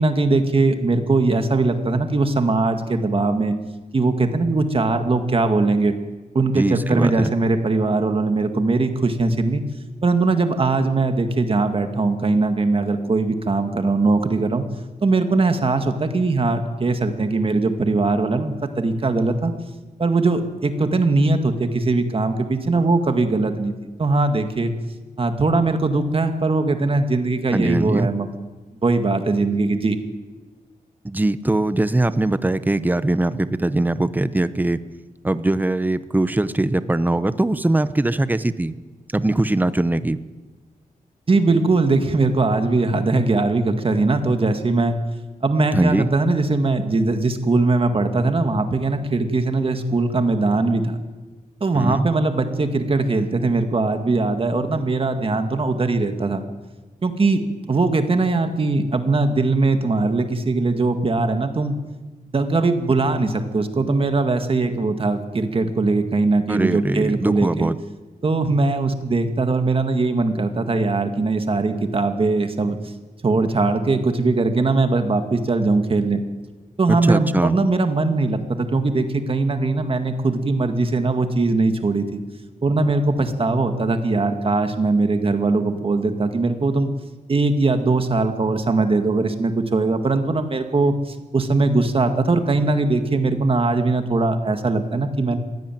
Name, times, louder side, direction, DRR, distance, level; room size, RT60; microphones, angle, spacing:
voice 1, 0.0-3.5 3.9-5.9 6.3-9.6 10.0-14.6 15.0-19.5 20.0-23.7 24.0-24.7 25.2-28.3 28.8-30.0 41.3-45.0 45.4-51.0 51.6-56.4 57.0-57.4 57.7-61.8 62.3-67.7 68.2-72.8 73.2-76.2 76.8-82.2 82.6-86.9 87.3-95.4, right 3 dB, 35° right, 7 dB, 2.0 m, -20 dB
voice 2, 6.6-7.3 27.5-28.1 31.0-34.8 35.2-38.7 39.1-40.2 45.7-46.1 51.7-52.1 66.5-67.8 76.9-77.6, right 2 dB, 10° right, 14 dB, 0.8 m, -21 dB
21.0 x 16.5 x 9.3 m, 1.2 s
wide cardioid pair, 155°, 15 cm